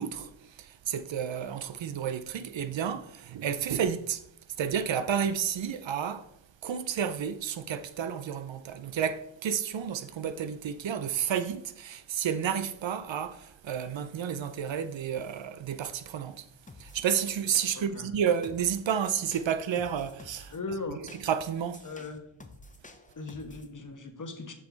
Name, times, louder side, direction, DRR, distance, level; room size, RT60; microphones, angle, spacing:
voice 1, 0.0-4.2 4.6-6.3 6.6-16.4 16.8-20.5 21.2-21.8, right 8 dB, 65° right, 0.7 m, -31 dB
sound 1, 16.7-17.1 17.5-18.0 18.4-18.9 19.3-20.6 21.1-23.7, left 2 dB, 15° left, 0.8 m, -51 dB
voice 2, 17.7-18.1 20.5-21.1 21.8-22.3 23.1-24.5, left 3 dB, 40° left, 1.2 m, -38 dB
7.4 x 5.4 x 4.0 m
cardioid pair, 65°, 49 cm